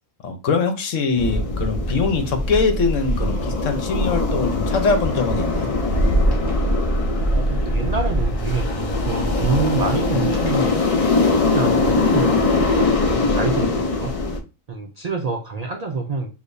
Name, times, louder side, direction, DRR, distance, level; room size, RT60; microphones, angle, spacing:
voice 1, 0.2-5.7, left 4 dB, 70° left, 6 dB, 1.2 m, -22 dB
sound 1, 1.2-14.4, left 2 dB, 40° left, 0.5 m, -21 dB
sound 2, 6.3-7.0 10.1-11.1, left 1 dB, 15° left, 1.6 m, -38 dB
voice 2, 7.3-12.6 13.1-14.2 14.7-16.3, right 4 dB, 80° right, 3 dB, 0.3 m, -27 dB
6.5 x 2.6 x 2.7 m, 0.30 s
omnidirectional pair, 1.4 m